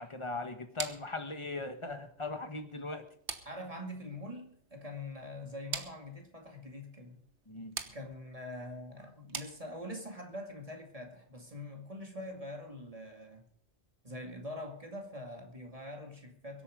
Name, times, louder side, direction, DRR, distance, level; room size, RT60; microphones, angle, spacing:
voice 1, 0.0-3.1 7.5-7.8, left 3 dB, 25° left, 7 dB, 1.5 m, -39 dB
sound 1, 0.8-10.1, right 6 dB, 75° right, 1.5 m, -46 dB
voice 2, 3.5-7.2 7.9-13.4 14.0-16.6, left 1 dB, 30° right, 3 dB, 2.4 m, -44 dB
23.0 x 8.6 x 5.2 m, 0.63 s
omnidirectional pair, 1.2 m